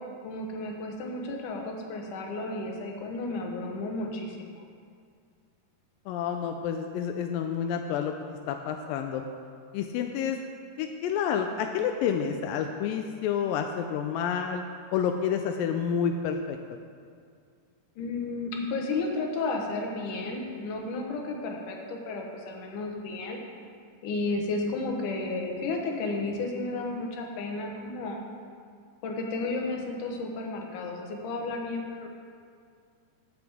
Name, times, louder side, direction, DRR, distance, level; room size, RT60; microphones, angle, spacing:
voice 1, 0.2-4.6 18.0-23.4 24.0-28.2 29.0-32.1, left 3 dB, 70° left, 1 dB, 2.5 m, -33 dB
voice 2, 6.1-8.1 8.5-9.2 9.7-10.4 10.8-14.6 14.9-16.6, left 7 dB, 90° left, 5 dB, 2.3 m, -29 dB
15.5 x 7.0 x 3.5 m, 2.2 s
omnidirectional pair, 3.9 m